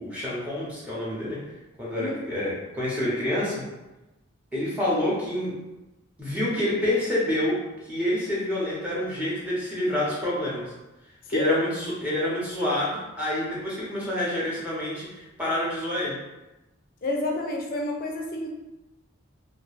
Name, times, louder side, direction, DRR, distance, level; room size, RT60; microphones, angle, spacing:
voice 1, 0.0-1.4 1.8-3.6 4.5-5.5 6.2-7.6 7.8-10.6 11.3-16.2, left 1 dB, 5° right, -9 dB, 0.7 m, -27 dB
voice 2, 11.3-11.6 17.0-18.5, left 1 dB, 40° left, 0 dB, 0.4 m, -29 dB
2.3 x 2.2 x 3.1 m, 1.0 s
head